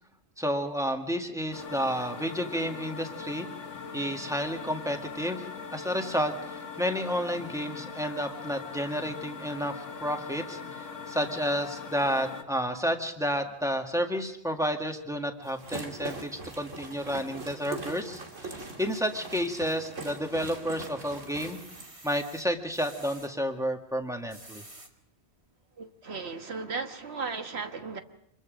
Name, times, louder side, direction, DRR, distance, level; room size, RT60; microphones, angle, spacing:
voice 1, 0.4-3.5 3.9-10.6 11.1-21.6 22.0-24.6, equal, 5° right, 4 dB, 1.8 m, -31 dB
sound 1, 1.5-12.4, left 6 dB, 80° left, 1.7 m, -41 dB
sound 2, 15.4-21.9, right 2 dB, 90° right, 2.8 m, -41 dB
sound 3, 21.1-23.3 24.1-24.9 25.5-25.6 26.0-26.1, right 2 dB, 25° right, 1.9 m, -50 dB
voice 2, 25.8-28.0, right 4 dB, 60° right, 7 dB, 1.6 m, -36 dB
26.0 x 21.5 x 5.2 m, 0.78 s
omnidirectional pair, 1.2 m